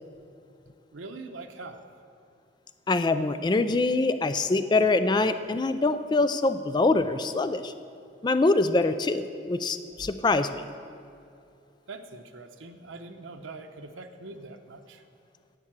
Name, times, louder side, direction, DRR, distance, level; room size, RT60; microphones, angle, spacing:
voice 1, 0.9-1.9 11.9-15.0, right 3 dB, 90° right, 5 dB, 0.8 m, -43 dB
voice 2, 2.9-7.7 8.2-10.6, left 3 dB, 25° left, 11 dB, 0.3 m, -24 dB
11.0 x 8.2 x 7.4 m, 2.5 s
head